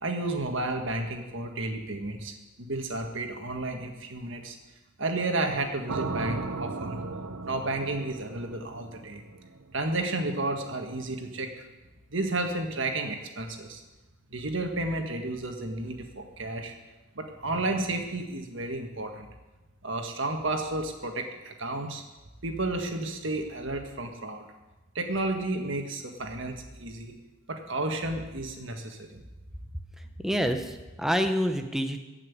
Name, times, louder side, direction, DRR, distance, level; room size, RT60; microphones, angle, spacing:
voice 1, 0.0-4.6 5.0-7.0 7.4-9.2 9.7-11.5 12.1-13.8 14.3-16.7 17.2-19.3 19.8-22.0 22.4-24.5 25.0-27.1 27.5-29.2, right 2 dB, 60° right, 4 dB, 1.7 m, -32 dB
sound 1, 5.9-10.0, right 3 dB, 90° right, 1.1 m, -36 dB
voice 2, 30.2-32.0, equal, ahead, 6 dB, 0.8 m, -27 dB
15.5 x 6.0 x 9.4 m, 1.1 s
head